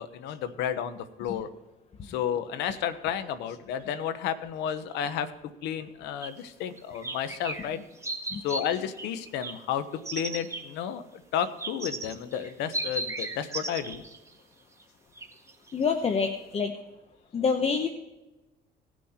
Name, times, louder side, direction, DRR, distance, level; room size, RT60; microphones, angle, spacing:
voice 1, 0.0-1.5 2.0-5.3 5.6-7.8 8.4-9.8 10.1-11.0 11.3-14.0, left 9 dB, 85° left, 12 dB, 0.9 m, -32 dB
sound 1, 6.2-6.3 6.8-7.7 8.0-8.6 9.0-9.5 10.0-10.6 11.4-14.3 14.8-14.9 15.2-15.8 16.2-16.3 16.6-16.7, right 2 dB, 15° right, 1.6 m, -35 dB
voice 2, 15.7-16.7 17.3-17.9, left 5 dB, 35° left, 6 dB, 1.0 m, -26 dB
18.5 x 6.2 x 4.3 m, 1.1 s
cardioid pair, 110°, 17 cm